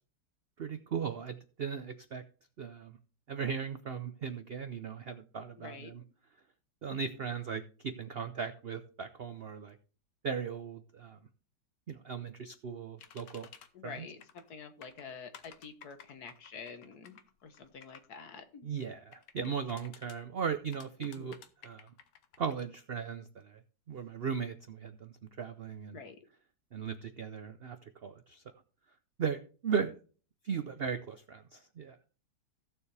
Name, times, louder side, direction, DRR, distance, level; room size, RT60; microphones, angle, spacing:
voice 1, 0.6-2.2 2.6-3.0 3.3-6.0 6.8-9.8 10.2-11.2 11.9-13.5 13.8-14.1 18.6-21.4 21.6-21.9 22.4-23.6 23.9-26.0 26.7-28.4 29.2-30.0 30.4-32.0, right 6 dB, 70° right, 10 dB, 0.5 m, -37 dB
voice 2, 5.6-6.1 13.7-18.7 21.0-21.3 25.9-26.2, left 5 dB, 65° left, 8 dB, 1.7 m, -48 dB
sound 1, 13.0-13.7 14.2-14.5 14.8-18.1 19.1-20.2 20.7-22.6, left 8 dB, 80° left, 1.6 m, -54 dB
15.5 x 7.0 x 3.3 m, 0.38 s
omnidirectional pair, 1.9 m